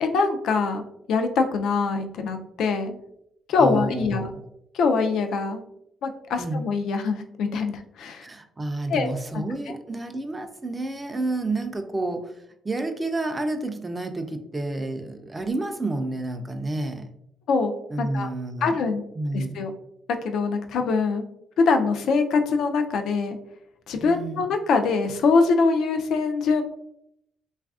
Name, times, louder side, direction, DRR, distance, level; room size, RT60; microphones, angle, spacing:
voice 1, 0.0-3.0 3.5-4.3 4.7-5.6 6.0-8.2 8.9-9.7 17.5-18.3 18.6-19.0 19.3-19.7 20.2-21.2 21.6-23.4 23.9-26.6, left 4 dB, 75° left, 6 dB, 0.3 m, -23 dB
voice 2, 3.6-4.4 6.4-6.6 8.2-12.3 12.6-17.1 17.9-18.7 19.2-19.6 24.0-24.4, right 2 dB, 20° right, 6 dB, 0.3 m, -30 dB
3.2 x 2.4 x 2.3 m, 0.77 s
cardioid pair, 90°, 0 cm